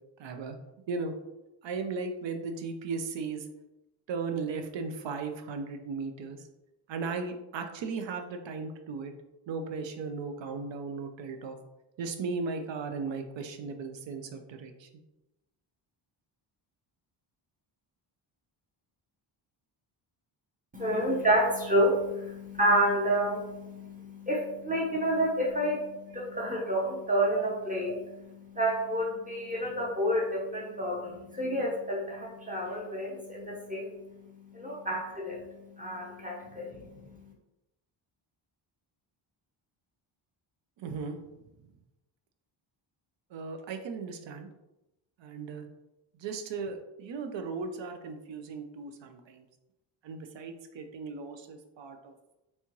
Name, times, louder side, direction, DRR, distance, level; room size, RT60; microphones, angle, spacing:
voice 1, 0.2-0.6 0.9-1.1 1.6-3.5 4.1-6.4 6.9-9.1 9.5-11.6 12.0-14.9 36.7-36.9 40.8-41.2 43.3-44.5 45.2-45.7 46.2-49.4 50.0-52.4, right 4 dB, 65° right, 5 dB, 0.6 m, -36 dB
voice 2, 20.7-37.1, right 1 dB, 15° right, -3 dB, 0.7 m, -29 dB
4.3 x 3.5 x 3.0 m, 0.96 s
wide cardioid pair, 165°, 49 cm